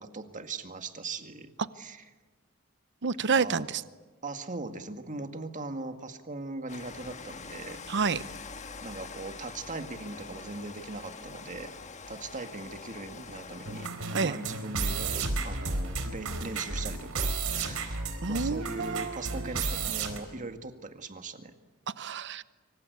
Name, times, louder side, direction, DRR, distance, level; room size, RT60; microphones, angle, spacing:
voice 1, 0.0-2.1 3.3-3.7 4.2-7.8 8.8-11.7 12.1-13.9 14.2-21.5, right 3 dB, 35° right, 8 dB, 2.0 m, -40 dB
voice 2, 3.0-3.7 7.9-8.2 14.1-14.3 18.2-19.1 22.0-22.4, right 5 dB, 55° right, 15 dB, 0.8 m, -28 dB
Rain, 6.7-13.9, left 4 dB, 35° left, 1.5 m, -44 dB
sound 1, 13.7-20.2, right 3 dB, 80° right, 4.3 m, -33 dB
25.5 x 25.5 x 8.3 m, 1.3 s
head